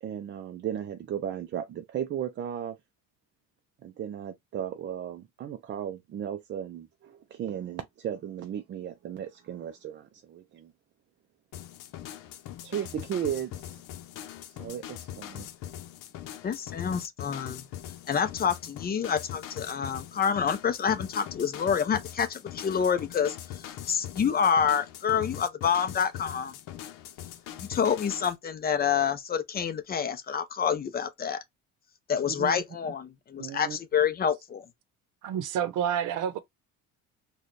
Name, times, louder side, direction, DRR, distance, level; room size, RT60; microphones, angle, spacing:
voice 1, 0.0-2.8 3.8-10.7 12.6-13.8 14.6-15.5 32.3-32.6 33.4-33.8, right 9 dB, 35° right, 0.5 m, -35 dB
sound 1, 11.5-28.4, left 11 dB, 75° left, 0.8 m, -42 dB
voice 2, 16.4-17.6 18.1-23.4 23.6-26.5 27.6-31.4 32.1-34.6, left 7 dB, 30° left, 0.6 m, -27 dB
voice 3, 35.2-36.4, right 9 dB, 70° right, 0.8 m, -29 dB
4.0 x 2.3 x 3.2 m
cardioid pair, 135°, 33 cm